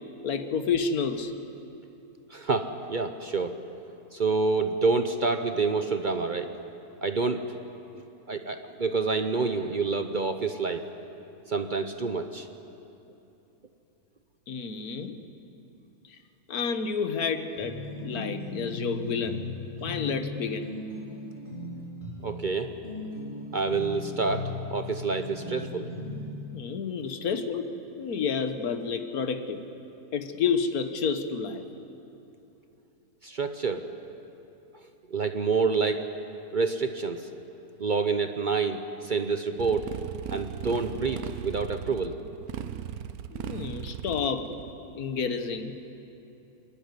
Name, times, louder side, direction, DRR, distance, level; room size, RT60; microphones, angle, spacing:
voice 1, 0.2-1.3 14.5-15.2 16.1-16.2 16.5-17.8 18.0-19.4 19.8-20.7 26.5-27.7 27.9-29.6 30.1-31.6 43.3-44.5 44.9-45.8, left 5 dB, 75° left, 8 dB, 1.6 m, -30 dB
voice 2, 2.3-3.6 4.1-6.5 7.0-7.4 8.3-10.8 11.5-12.5 22.2-22.7 23.5-25.9 33.2-33.8 35.1-36.1 36.5-37.3 37.8-39.9 40.3-42.2, right 4 dB, 45° right, 7 dB, 0.7 m, -28 dB
sound 1, 17.6-26.4, left 2 dB, 35° left, 4.3 m, -37 dB
Motorcycle, 39.6-44.7, right 9 dB, 75° right, 1.2 m, -37 dB
26.5 x 11.5 x 9.7 m, 2.9 s
omnidirectional pair, 1.6 m